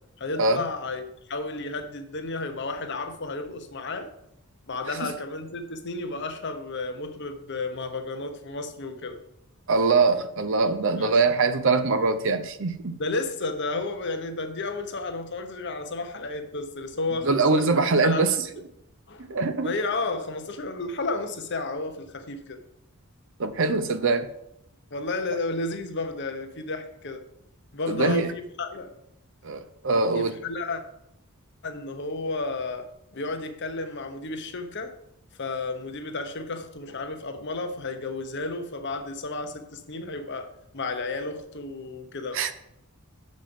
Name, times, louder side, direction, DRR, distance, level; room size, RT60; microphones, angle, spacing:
voice 1, 0.2-4.1 4.7-9.2 11.0-11.1 13.0-17.7 18.0-18.3 19.1-22.6 24.9-27.2 27.7-28.9 30.2-30.8 31.6-32.9 33.1-34.9 35.4-42.4, left 3 dB, 55° left, 1.0 m, -32 dB
voice 2, 9.7-13.0 17.2-18.5 19.3-19.7 23.4-24.3 27.9-28.3 29.4-30.3 42.3-42.6, right 3 dB, 60° right, 0.6 m, -23 dB
7.3 x 5.3 x 5.4 m
head